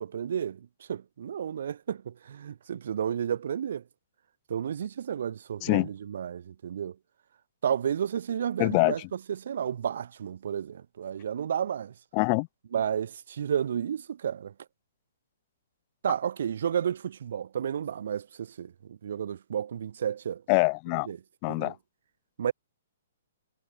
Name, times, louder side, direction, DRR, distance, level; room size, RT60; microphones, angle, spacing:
voice 1, 0.0-3.8 4.5-7.0 7.6-11.9 12.7-14.5 16.0-20.4 21.1-21.2 21.5-21.7 22.4-22.5, right 8 dB, 60° right, 5.8 m, -32 dB
voice 2, 8.6-8.9 12.1-12.5 20.5-21.1 21.4-21.8, left 37 dB, 25° left, 1.9 m, -24 dB
hypercardioid pair, 170°, 0 cm